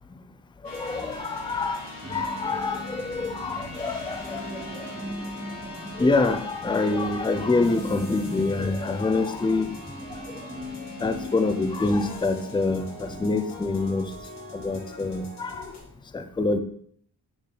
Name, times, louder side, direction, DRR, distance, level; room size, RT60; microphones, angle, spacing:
sound 1, 0.6-15.8, left 1 dB, 85° left, 2.9 m, -41 dB
voice 1, 0.6-1.8 2.1-4.4 6.0-9.7 11.0-14.1 14.5-15.6 16.1-16.6, left 3 dB, 10° left, 9 dB, 0.5 m, -26 dB
sound 2, 2.0-13.8 14.2-14.3, equal, 15° right, 1.4 m, -40 dB
12.0 x 4.0 x 3.3 m, 0.64 s
cardioid pair, 80°, 41 cm